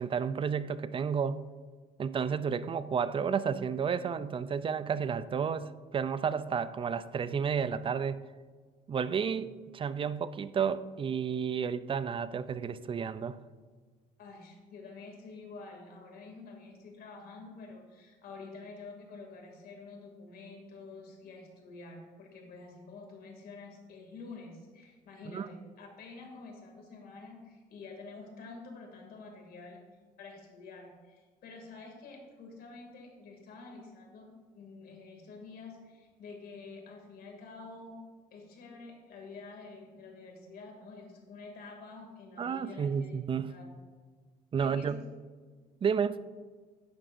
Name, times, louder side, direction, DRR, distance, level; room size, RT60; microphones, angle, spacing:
voice 1, 0.0-1.4 2.0-8.2 8.9-13.4 25.3-25.5 42.4-43.5 44.5-45.0 45.8-46.2, right 6 dB, 30° right, 14 dB, 0.5 m, -31 dB
voice 2, 14.2-29.8 30.2-38.0 38.3-43.2 43.5-43.7 44.6-45.0, left 3 dB, 65° left, 2 dB, 2.7 m, -48 dB
11.5 x 9.7 x 2.7 m, 1.5 s
cardioid pair, 110°, 17 cm